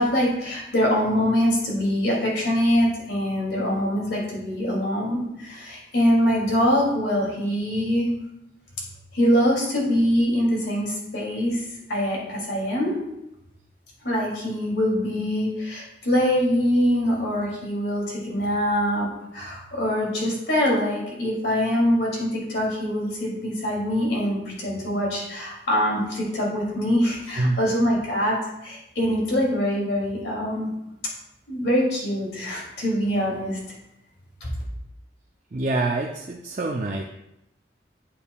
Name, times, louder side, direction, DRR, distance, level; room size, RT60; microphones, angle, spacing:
voice 1, 0.0-8.1 9.1-11.6 11.9-12.9 14.0-19.1 19.3-28.4 28.6-30.7 31.5-33.6, equal, 80° left, -4 dB, 2.7 m, -23 dB
voice 2, 35.5-37.0, right 2 dB, 40° right, 1 dB, 0.5 m, -25 dB
8.5 x 7.1 x 2.3 m, 0.87 s
head